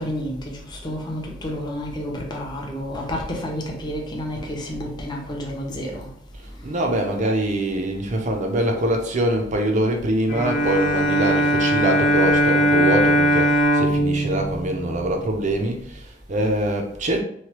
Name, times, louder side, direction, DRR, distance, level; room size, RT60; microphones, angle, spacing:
voice 1, 0.0-6.1, equal, 25° left, 0.6 m, -30 dB
voice 2, 6.6-17.2, right 1 dB, 40° right, 0.5 m, -24 dB
Bowed string instrument, 10.3-15.5, right 1 dB, 45° left, 0.9 m, -20 dB
3.1 x 2.2 x 2.9 m
head